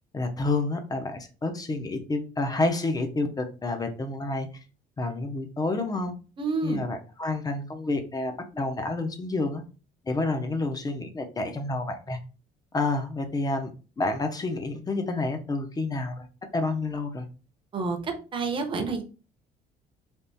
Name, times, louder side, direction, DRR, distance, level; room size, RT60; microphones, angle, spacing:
voice 1, 0.1-4.5 5.0-6.1 6.6-9.6 10.0-12.2 12.7-13.7 14.0-16.3 16.5-17.3, left 2 dB, 20° left, 7 dB, 0.6 m, -29 dB
voice 2, 6.4-6.8 17.7-19.0, right 4 dB, 30° right, 4 dB, 0.7 m, -29 dB
3.5 x 2.4 x 2.7 m, 0.35 s
cardioid pair, 110°, 17 cm